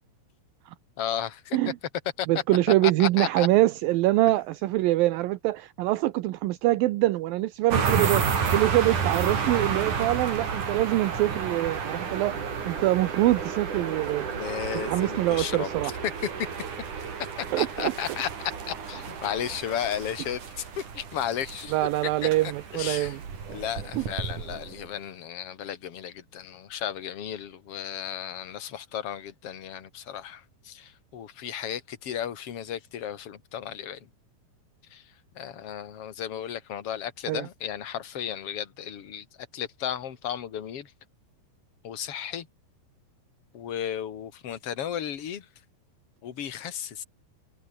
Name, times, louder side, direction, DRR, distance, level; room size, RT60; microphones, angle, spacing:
voice 1, 1.0-1.7 2.2-2.3 2.8-3.5 14.3-15.9 17.4-21.8 22.2-23.2 23.5-34.1 34.9-35.0 35.4-39.3 39.5-40.9 41.8-42.5 43.5-45.5 46.2-47.0, left 9 dB, 45° left, 2.4 m, -34 dB
voice 2, 2.3-12.4 12.6-14.3 14.9-15.9 17.5-17.9 21.7-23.2 24.0-24.1 37.3-37.5, right 17 dB, 75° right, 2.3 m, -24 dB
sound 1, 7.7-25.0, right 6 dB, 50° right, 5.0 m, -31 dB
omnidirectional pair, 4.8 m